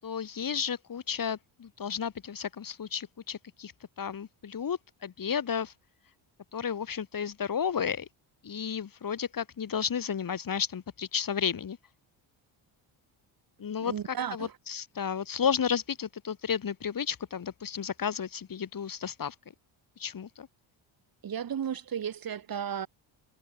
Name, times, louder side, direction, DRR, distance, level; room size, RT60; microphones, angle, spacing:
voice 1, 0.0-3.7 4.0-5.7 6.5-8.1 8.4-11.8 13.6-19.4 20.0-20.5, left 7 dB, 45° left, 7.2 m, -32 dB
voice 2, 13.8-14.5 21.2-22.9, right 8 dB, 45° right, 2.9 m, -34 dB
cardioid pair, 125°, 47 cm